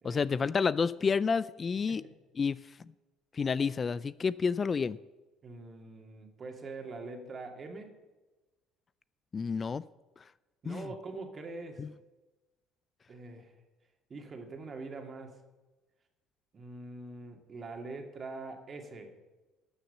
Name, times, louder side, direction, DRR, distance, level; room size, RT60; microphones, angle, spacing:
voice 1, 0.0-2.0 2.4-2.8 3.3-5.0 9.3-9.8 10.6-10.9 11.8-11.9, left 5 dB, 35° left, 19 dB, 0.3 m, -30 dB
voice 2, 5.4-8.0 10.6-11.9 13.1-13.5 14.1-15.4 16.5-19.1, right 3 dB, 40° right, 4 dB, 2.0 m, -44 dB
12.5 x 6.5 x 6.7 m, 1.2 s
hypercardioid pair, 60°, 0 cm